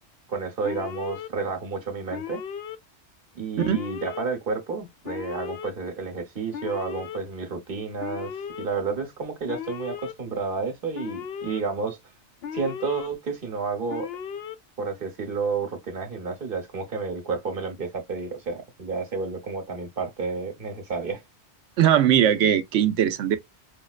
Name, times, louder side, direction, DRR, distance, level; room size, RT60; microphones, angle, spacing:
voice 1, 0.3-2.4 3.3-12.0 12.5-14.1 14.8-21.2, right 4 dB, 50° right, 1.2 m, -31 dB
Alarm, 0.6-1.3 2.1-2.8 3.6-4.2 5.0-5.7 6.5-7.2 8.0-8.7 9.5-10.1 10.9-11.6 12.4-13.1 13.9-14.6, left 8 dB, 65° left, 0.8 m, -35 dB
voice 2, 21.8-23.4, right 10 dB, 80° right, 0.9 m, -20 dB
5.2 x 2.1 x 2.4 m
omnidirectional pair, 1.2 m